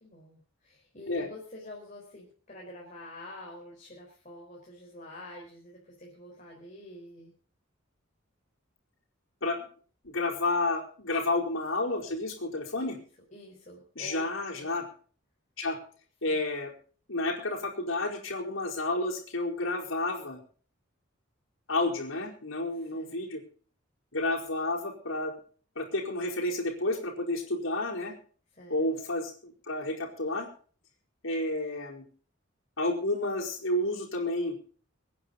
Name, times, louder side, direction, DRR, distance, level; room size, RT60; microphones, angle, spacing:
voice 1, 0.0-7.3 11.1-11.2 12.8-13.0 13.3-14.2 14.6-14.8 16.3-16.4 22.8-23.1 28.5-28.9, left 1 dB, 40° left, -2 dB, 4.5 m, -47 dB
voice 2, 10.0-13.0 13.9-14.9 15.6-15.8 16.2-16.7 17.1-20.4 21.7-23.4 24.1-25.3 25.8-28.1 28.7-30.5 31.2-32.1 32.8-34.6, left 2 dB, 85° left, -1 dB, 4.5 m, -30 dB
25.0 x 9.6 x 4.0 m, 0.42 s
head